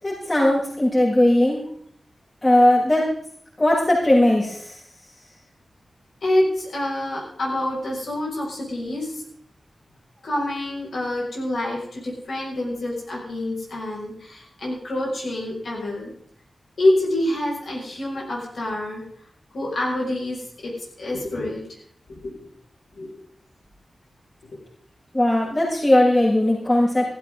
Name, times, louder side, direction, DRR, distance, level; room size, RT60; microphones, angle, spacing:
voice 1, 0.0-1.6 2.4-3.0 3.6-4.7 25.1-27.0, left 1 dB, 35° left, -10 dB, 7.3 m, -18 dB
voice 2, 6.2-9.1 10.2-16.1 16.8-19.0 19.5-20.7 21.0-21.6 22.1-22.3 22.9-23.1, left 1 dB, 80° left, -4 dB, 6.8 m, -26 dB
16.5 x 16.0 x 4.0 m, 0.64 s
wide cardioid pair, 125°, 0 cm